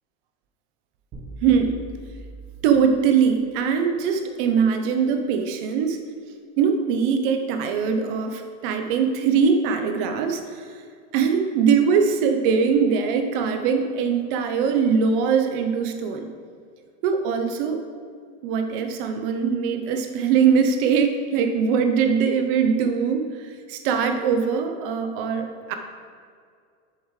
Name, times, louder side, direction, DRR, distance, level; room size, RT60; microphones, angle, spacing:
sound 1, 1.1-3.2, right 2 dB, 30° right, 1.2 m, -40 dB
voice 1, 1.4-1.8 2.6-6.0 6.6-10.7 11.1-16.3 17.0-17.8 18.4-25.8, right 6 dB, 50° right, 5 dB, 0.9 m, -22 dB
7.7 x 7.3 x 3.3 m, 2.2 s
supercardioid pair, 150°, 34 cm